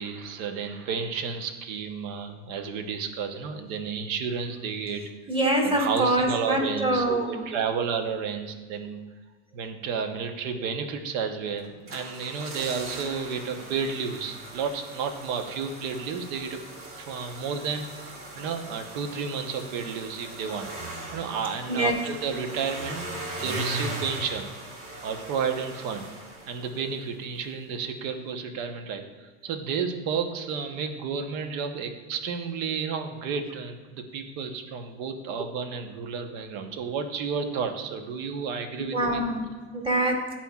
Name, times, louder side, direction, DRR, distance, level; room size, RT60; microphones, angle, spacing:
voice 1, 0.0-5.0 5.6-9.0 9.5-16.6 17.1-20.7 21.1-23.1 23.4-24.5 25.0-26.1 26.5-39.2, right 6 dB, 70° right, 6 dB, 1.1 m, -32 dB
voice 2, 5.3-7.6 21.7-22.0 38.9-40.3, right 1 dB, 15° right, 0 dB, 1.7 m, -25 dB
sound 1, 11.6-27.1 27.4-27.5, right 1 dB, 35° right, 1.9 m, -39 dB
11.0 x 4.3 x 2.4 m, 1.4 s
supercardioid pair, 95°, 36 cm